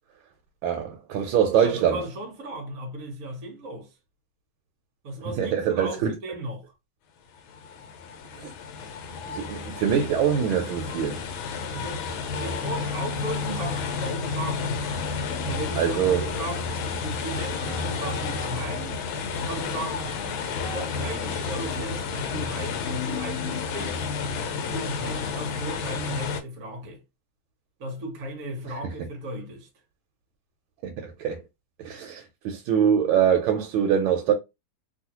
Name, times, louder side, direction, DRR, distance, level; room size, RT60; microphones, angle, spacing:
voice 1, 0.6-2.0 5.2-6.1 8.4-8.5 9.3-11.2 15.8-16.2 30.8-31.4 31.8-34.3, right 8 dB, 80° right, 1.4 m, -24 dB
voice 2, 1.6-3.9 5.0-6.7 11.7-14.8 15.4-20.1 20.7-24.3 24.7-27.0 27.8-29.7, right 1 dB, 55° right, 1.0 m, -36 dB
sound 1, 7.4-26.4, left 5 dB, 85° left, 1.5 m, -31 dB
3.1 x 2.6 x 2.8 m
omnidirectional pair, 2.2 m